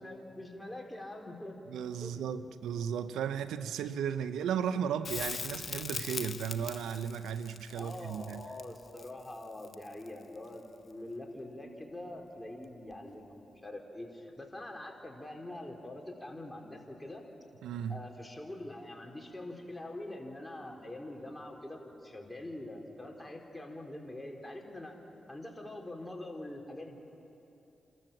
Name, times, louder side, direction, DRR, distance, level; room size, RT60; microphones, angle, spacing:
voice 1, 0.0-1.6 2.0-2.3 7.7-17.2 17.9-24.9 25.3-27.0, left 1 dB, 15° left, 4.2 m, -44 dB
voice 2, 1.7-8.5 17.6-18.1, right 8 dB, 90° right, 0.7 m, -35 dB
Crackle, 5.0-10.2 12.9-13.0, left 5 dB, 60° left, 0.7 m, -41 dB
29.0 x 13.5 x 7.4 m
supercardioid pair, 45°, 0 cm